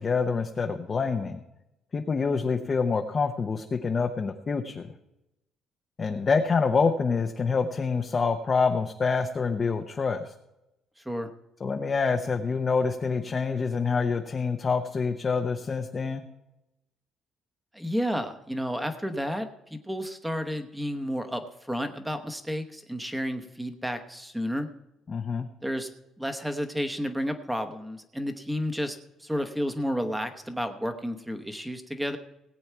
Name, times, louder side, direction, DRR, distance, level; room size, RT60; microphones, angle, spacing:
voice 1, 0.0-1.4 1.9-4.9 6.0-10.3 11.6-16.2 25.1-25.5, left 5 dB, 25° left, 4 dB, 0.7 m, -26 dB
voice 2, 11.0-11.3 17.7-24.7 25.6-25.9 26.2-32.2, equal, 5° right, 7 dB, 1.0 m, -31 dB
18.0 x 8.7 x 4.6 m, 0.92 s
cardioid pair, 165°, 0 cm